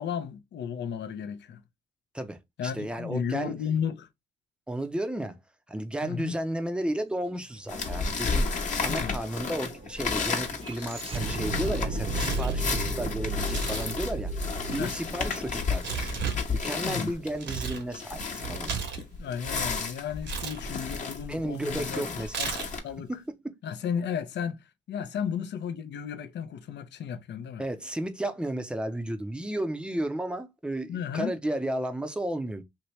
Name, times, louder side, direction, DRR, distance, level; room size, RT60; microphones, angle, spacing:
voice 1, 0.0-1.6 2.6-4.1 6.0-6.4 8.9-9.2 14.8-14.9 16.8-17.1 19.2-23.1 23.6-27.6 30.9-31.3, left 7 dB, 60° left, 0.7 m, -34 dB
voice 2, 2.1-3.5 4.7-5.4 5.7-8.5 8.8-16.1 16.5-18.7 21.3-22.4 23.1-23.2 27.6-32.6, right 1 dB, 5° right, 0.7 m, -33 dB
sound 1, 7.7-22.8, left 4 dB, 40° left, 1.1 m, -32 dB
sound 2, 7.7-7.8 8.0-16.3, right 1 dB, 30° right, 0.8 m, -34 dB
Tearing, 11.8-12.6 13.4-13.9 14.2-17.8 18.2-19.7 20.2-20.6 22.3-22.9, right 6 dB, 65° right, 1.1 m, -35 dB
2.9 x 2.9 x 3.1 m
cardioid pair, 90°, 20 cm